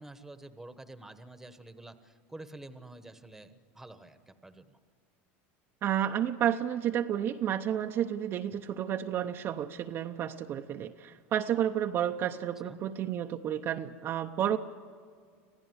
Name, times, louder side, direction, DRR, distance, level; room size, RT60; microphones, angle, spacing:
voice 1, 0.0-4.8 8.5-8.6 12.7-12.8, right 2 dB, 5° right, 10 dB, 1.2 m, -49 dB
voice 2, 5.8-14.6, right 10 dB, 35° right, 4 dB, 0.8 m, -31 dB
26.5 x 16.0 x 9.6 m, 2.1 s
supercardioid pair, 140°, 7 cm